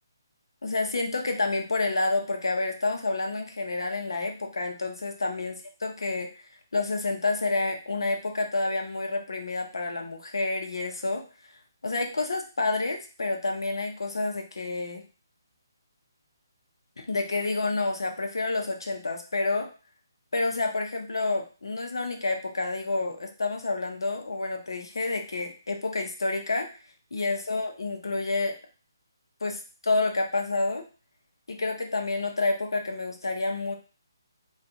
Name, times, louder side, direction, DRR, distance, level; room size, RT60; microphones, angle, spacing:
voice 1, 0.6-6.3 6.7-11.2 11.8-15.0 17.0-19.7 20.3-26.7 27.1-28.5 29.4-30.8 31.5-33.7, left 3 dB, 90° left, 3 dB, 0.7 m, -29 dB
2.7 x 2.3 x 2.4 m, 0.35 s
hypercardioid pair, 165°, 2 cm